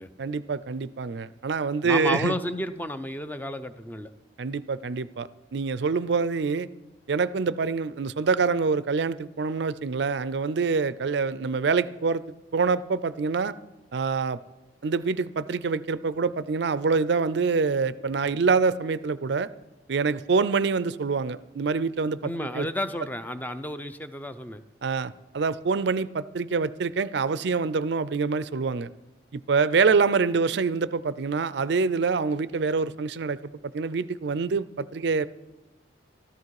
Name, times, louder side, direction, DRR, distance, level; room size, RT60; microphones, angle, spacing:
voice 1, 0.2-2.4 4.4-6.7 7.1-12.2 12.5-13.5 13.9-14.4 14.8-19.5 19.9-22.7 24.8-28.9 29.3-33.4 33.7-35.3, right 4 dB, 60° right, 17 dB, 0.4 m, -26 dB
voice 2, 1.8-4.1 22.2-24.6, left 1 dB, 10° left, 10 dB, 0.5 m, -32 dB
13.5 x 13.5 x 4.8 m, 1.1 s
head